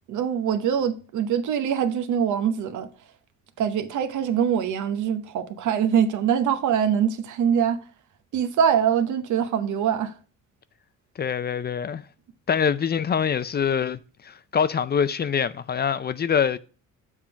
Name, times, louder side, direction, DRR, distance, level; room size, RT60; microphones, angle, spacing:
voice 1, 0.1-2.9 3.6-7.8 8.3-10.1, right 8 dB, 75° right, 0.9 m, -23 dB
voice 2, 11.2-12.0 12.5-16.6, left 7 dB, 35° left, 0.4 m, -24 dB
7.3 x 3.6 x 5.7 m
cardioid pair, 90°, 30 cm